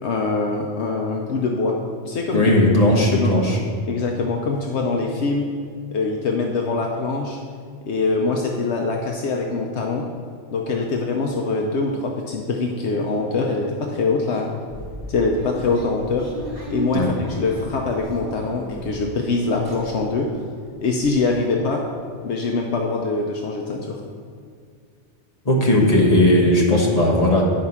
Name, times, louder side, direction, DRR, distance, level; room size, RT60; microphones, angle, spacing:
voice 1, 0.0-1.8 2.0-2.4 3.1-3.3 3.9-5.5 5.9-7.4 7.8-10.1 10.5-14.5 15.1-16.3 16.7-20.3 20.8-21.8 22.2-24.0, left 3 dB, 70° left, 1 dB, 1.0 m, -23 dB
voice 2, 2.3-3.6 16.9-17.1 25.4-27.4, left 1 dB, 35° left, -2 dB, 1.5 m, -17 dB
sound 1, 14.7-19.2 19.5-20.3 20.7-20.8 21.0-21.2, right 1 dB, 20° right, 2.6 m, -35 dB
9.2 x 4.7 x 5.6 m, 2.1 s
omnidirectional pair, 1.2 m